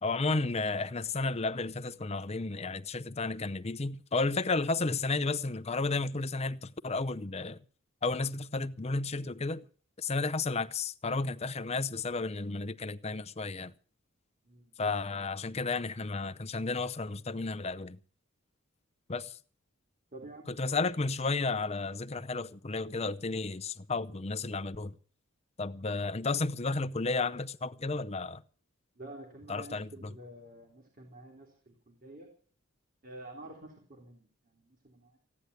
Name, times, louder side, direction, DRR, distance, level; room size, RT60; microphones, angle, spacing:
voice 1, 0.0-7.6 8.0-9.6 10.0-13.7 14.8-18.0 19.1-19.4 20.5-24.9 25.6-28.4 29.5-30.1, left 3 dB, 30° left, 0.7 m, -32 dB
voice 2, 20.1-20.9 29.0-32.3 33.0-35.2, right 1 dB, 45° right, 3.1 m, -49 dB
15.5 x 9.9 x 8.1 m
head